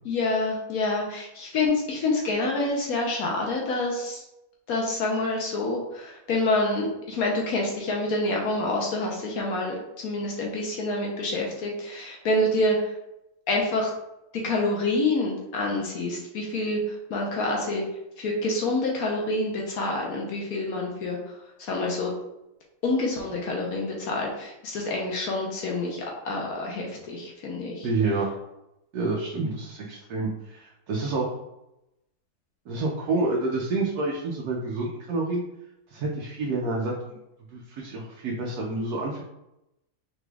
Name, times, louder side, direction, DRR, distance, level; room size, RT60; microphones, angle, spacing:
voice 1, 0.0-4.2 4.7-12.9 13.5-13.9 14.4-17.8 18.2-21.3 21.6-22.1 22.8-27.9, left 2 dB, 75° left, -1 dB, 1.2 m, -27 dB
voice 2, 27.8-28.3 28.9-31.3 32.7-35.4 35.9-37.2 37.5-39.2, right 3 dB, 80° right, -2 dB, 1.2 m, -28 dB
4.9 x 3.3 x 2.3 m, 0.88 s
omnidirectional pair, 1.6 m